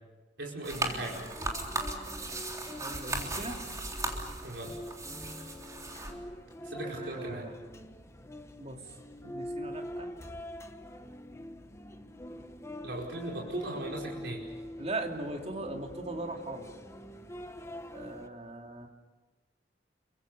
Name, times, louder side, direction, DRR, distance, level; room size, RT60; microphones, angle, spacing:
voice 1, 0.4-1.2 4.4-4.7 6.6-7.5 12.8-14.4, right 1 dB, 75° right, -2 dB, 5.1 m, -38 dB
sound 1, 0.6-6.1, right 2 dB, 20° right, 3.5 m, -37 dB
sound 2, 0.7-18.3, equal, 15° left, 1.3 m, -44 dB
voice 2, 2.8-3.6 6.8-7.5 8.6-8.8 9.2-10.1 14.8-16.7 17.9-18.9, right 2 dB, 35° right, 2 dB, 3.1 m, -39 dB
29.0 x 24.0 x 6.9 m, 1.2 s
head